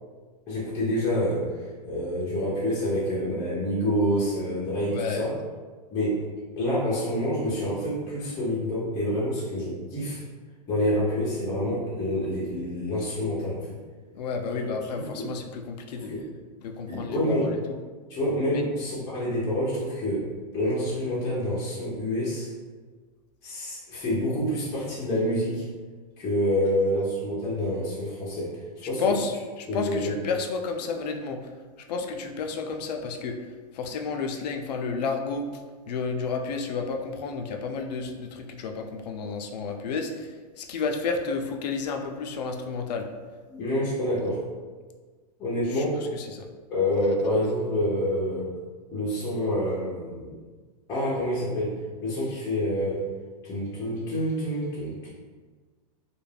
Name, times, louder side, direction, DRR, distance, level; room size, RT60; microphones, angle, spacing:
voice 1, 0.5-1.5 1.8-5.3 5.9-6.3 6.5-10.2 10.7-13.7 15.0-15.3 16.0-16.3 16.9-17.6 18.1-22.5 23.4-25.6 26.2-28.5 28.9-29.0 29.7-30.1 43.5-44.4 45.4-46.0 46.7-48.5 48.9-50.3 50.9-53.1 53.4-55.1, equal, 15° left, -9 dB, 0.4 m, -27 dB
voice 2, 4.9-5.2 14.1-16.1 16.6-17.8 18.5-19.1 29.0-31.4 31.9-33.4 33.7-35.5 35.9-43.1 45.7-45.8 46.1-46.5, left 4 dB, 85° left, 4 dB, 0.4 m, -31 dB
2.3 x 2.1 x 3.2 m, 1.4 s
supercardioid pair, 165°, 21 cm